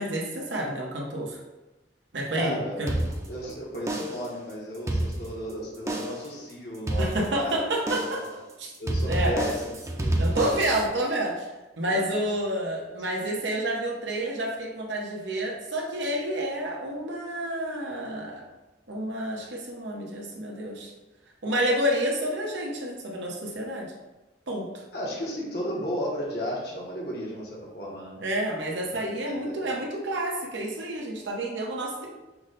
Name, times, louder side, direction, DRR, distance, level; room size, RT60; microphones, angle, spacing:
voice 1, 0.0-1.4 2.1-2.9 7.0-8.2 8.6-8.7 9.1-9.3 10.2-11.5 11.8-18.4 18.9-20.9 21.4-23.9 24.5-24.8 28.2-32.1, right 1 dB, 90° right, -1 dB, 1.0 m, -29 dB
voice 2, 2.3-7.6 8.8-9.7 10.0-10.6 11.9-12.2 24.9-28.2 28.8-29.7, equal, 60° left, -4 dB, 1.0 m, -34 dB
sound 1, 2.9-3.5 3.9-4.4 4.7-5.5 5.9-6.3 6.9-7.5 7.9-8.3 8.9-10.9, right 1 dB, 15° right, 0.5 m, -29 dB
5.8 x 2.1 x 3.9 m, 1.1 s
head